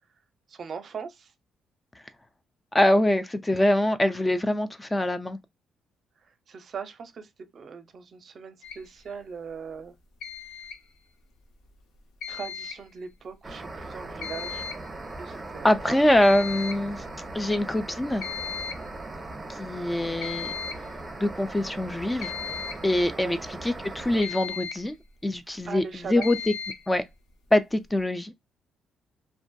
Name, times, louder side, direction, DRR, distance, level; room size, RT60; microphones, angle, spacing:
voice 1, 0.5-1.3 6.2-9.9 12.3-14.7 15.2-16.3 19.8-20.0 23.1-23.4 25.7-26.3, right 6 dB, 55° right, 0.5 m, -40 dB
voice 2, 2.7-5.4 15.6-17.0 17.3-18.2 19.5-20.5 21.2-22.3 22.8-24.9 25.2-26.4 26.9-27.0 27.5-28.3, left 1 dB, 15° left, 0.4 m, -24 dB
sound 1, 8.6-8.8 10.2-10.8 12.2-12.8 14.2-14.8 15.1-15.2 15.8-15.9 16.2-16.8 18.2-18.8 20.2-20.9 22.2-22.9 24.2-24.9 26.2-26.9, left 7 dB, 85° left, 0.5 m, -36 dB
sound 2, 13.4-24.2, right 2 dB, 20° right, 0.8 m, -39 dB
2.5 x 2.5 x 2.2 m
cardioid pair, 90°, 0 cm